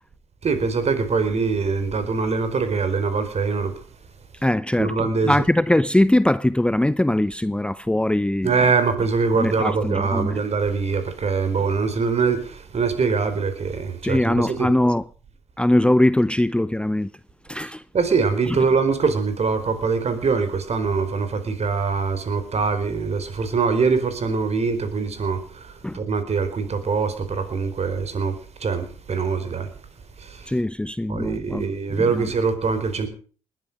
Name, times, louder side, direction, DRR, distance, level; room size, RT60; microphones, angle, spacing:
voice 1, 0.4-3.7 4.8-5.3 8.4-14.7 17.9-28.3 28.6-29.7 30.2-30.5 31.1-33.1, right 5 dB, 50° right, 4.3 m, -23 dB
voice 2, 4.4-8.6 9.3-10.4 11.6-11.7 14.0-15.0 15.6-17.1 17.5-17.8 18.5-18.6 25.8-26.0 30.5-32.3, left 1 dB, 5° left, 0.7 m, -21 dB
20.0 x 11.0 x 6.7 m
hypercardioid pair, 50°, 15 cm